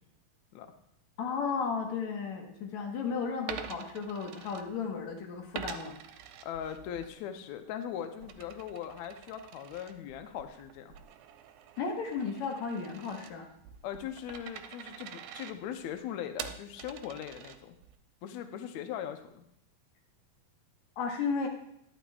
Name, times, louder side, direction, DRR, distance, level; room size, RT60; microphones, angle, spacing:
voice 1, 1.2-5.9 11.8-13.5 21.0-21.5, left 5 dB, 65° left, 2 dB, 2.3 m, -34 dB
Coin (dropping), 3.5-5.1 5.5-7.1 7.5-18.0, right 9 dB, 80° right, 2.2 m, -46 dB
voice 2, 6.4-10.9 13.8-17.8 18.2-19.4, left 9 dB, 80° left, 8 dB, 1.6 m, -40 dB
11.5 x 11.5 x 2.3 m, 0.76 s
omnidirectional pair, 4.1 m